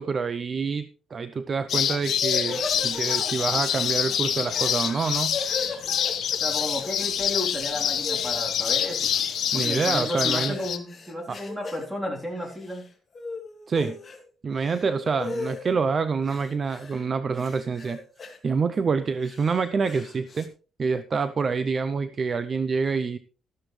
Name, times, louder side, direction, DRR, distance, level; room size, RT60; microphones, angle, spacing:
voice 1, 0.0-5.4 9.5-10.6 11.3-11.4 13.7-14.0 14.4-18.0 18.4-20.5 20.8-23.2, right 5 dB, 30° right, 13 dB, 0.6 m, -27 dB
sound 1, 1.7-10.8, left 9 dB, 60° left, 1.2 m, -26 dB
sound 2, 2.2-3.7 4.5-6.9 7.2-8.4 8.8-11.9 12.3-12.9 13.1-14.2 14.5-15.7 16.2-17.0 17.3-18.4 19.0-20.5, left 4 dB, 25° left, 2.4 m, -38 dB
voice 2, 6.4-9.1 9.5-12.9, left 1 dB, 10° right, 0 dB, 3.6 m, -32 dB
13.5 x 12.5 x 3.3 m, 0.37 s
cardioid pair, 155°, 0 cm